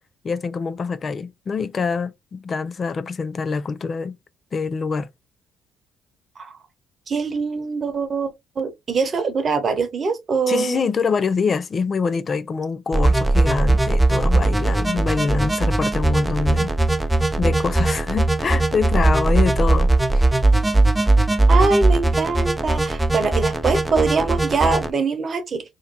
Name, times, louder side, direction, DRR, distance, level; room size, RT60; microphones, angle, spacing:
voice 1, 0.2-4.2 4.5-5.1 10.5-16.7 17.4-20.3, left 5 dB, 45° left, 0.4 m, -25 dB
voice 2, 7.1-8.3 8.6-10.9 21.5-25.6, right 4 dB, 45° right, 1.0 m, -23 dB
sound 1, 12.9-24.9, right 2 dB, 10° right, 0.5 m, -19 dB
2.7 x 2.2 x 3.8 m
hypercardioid pair, 55°, 0 cm